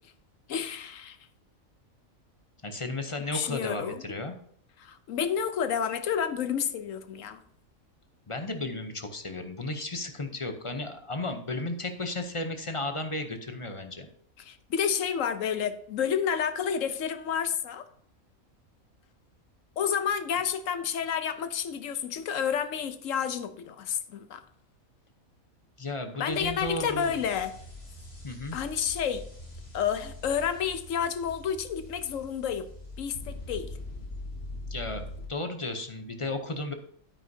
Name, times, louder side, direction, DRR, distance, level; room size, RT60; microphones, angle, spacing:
voice 1, 0.5-1.2 3.3-4.0 4.8-7.4 14.4-17.8 19.8-24.4 26.2-27.5 28.5-29.2 29.7-32.7 33.0-33.7, left 8 dB, 70° left, 11 dB, 1.1 m, -30 dB
voice 2, 2.6-4.3 8.3-14.1 25.8-27.2 28.2-28.6 34.7-36.7, left 2 dB, 30° left, 6 dB, 0.7 m, -34 dB
sound 1, 26.3-35.3, left 2 dB, 45° left, 2.5 m, -43 dB
9.3 x 9.0 x 2.7 m, 0.64 s
omnidirectional pair, 1.5 m